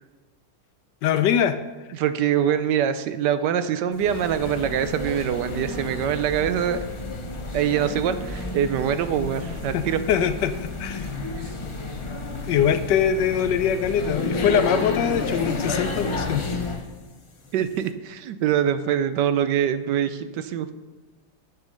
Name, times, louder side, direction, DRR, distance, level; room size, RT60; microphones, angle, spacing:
voice 1, 1.0-1.6 9.7-11.1 12.5-16.6, left 8 dB, 75° left, 11 dB, 1.2 m, -23 dB
voice 2, 1.9-6.8 7.5-10.0 11.0-11.1 17.5-20.7, right 9 dB, 75° right, 11 dB, 1.2 m, -24 dB
sound 1, 3.9-16.9, left 3 dB, 55° left, 0.3 m, -31 dB
8.1 x 7.3 x 6.4 m, 1.3 s
omnidirectional pair, 2.0 m